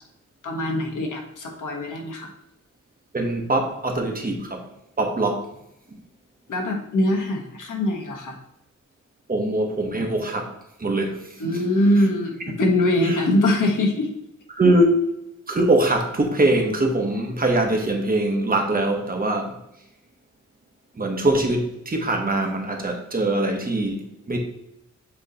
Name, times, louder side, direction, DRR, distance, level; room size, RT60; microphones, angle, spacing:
voice 1, 0.4-2.3 6.5-8.4 11.4-14.1, left 1 dB, 80° left, 1 dB, 1.4 m, -22 dB
voice 2, 3.1-4.7 5.0-5.5 9.3-10.5 10.8-11.4 13.0-13.2 14.5-15.0 15.5-19.6 21.0-24.4, right 1 dB, 30° right, 2 dB, 1.0 m, -22 dB
7.7 x 3.0 x 4.0 m, 0.81 s
wide cardioid pair, 130°, 31 cm